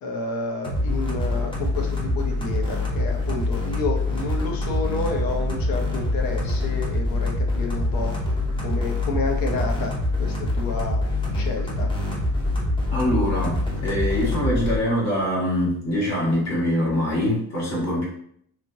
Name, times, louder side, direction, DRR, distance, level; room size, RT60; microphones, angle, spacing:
voice 1, 0.0-8.3 8.6-9.9 10.2-11.0 11.3-11.9, left 3 dB, 80° left, 2 dB, 0.8 m, -30 dB
sound 1, 0.6-14.8, left 2 dB, 15° left, 0.6 m, -25 dB
voice 2, 12.9-18.0, left 1 dB, 50° left, -6 dB, 1.1 m, -24 dB
3.2 x 2.8 x 2.6 m, 0.66 s
cardioid pair, 165°, 35 cm